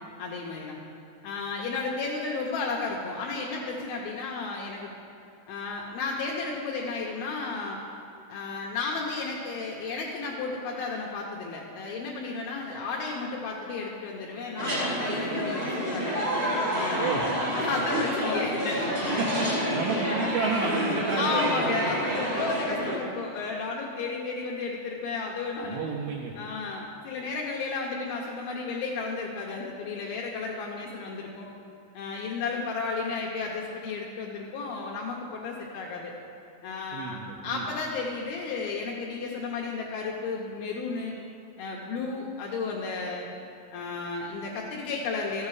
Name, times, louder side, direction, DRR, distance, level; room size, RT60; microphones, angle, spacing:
voice 1, 0.2-0.8 1.2-4.9 5.5-7.8 8.3-16.2 16.7-17.1 17.6-18.9 19.4-19.7 21.2-25.8 26.4-31.5 31.9-36.1 36.6-41.2 41.6-43.3 43.7-45.5, left 4 dB, 75° left, -2 dB, 2.4 m, -33 dB
sound 1, 14.6-23.0, equal, 45° right, 0.8 m, -28 dB
voice 2, 19.2-21.8 25.6-26.3 36.9-37.6, right 5 dB, 80° right, -1 dB, 2.3 m, -31 dB
13.0 x 7.5 x 4.8 m, 2.6 s
omnidirectional pair, 4.9 m